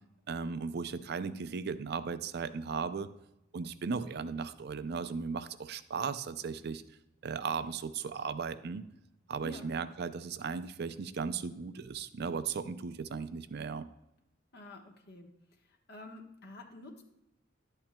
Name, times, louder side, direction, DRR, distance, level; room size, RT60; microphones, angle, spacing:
voice 1, 0.3-3.1 3.5-6.8 7.2-8.8 9.3-13.9, right 5 dB, 55° right, 13 dB, 0.4 m, -36 dB
voice 2, 14.5-15.3 15.6-17.0, left 1 dB, 55° left, 1 dB, 1.2 m, -49 dB
11.5 x 8.7 x 2.2 m, 0.89 s
head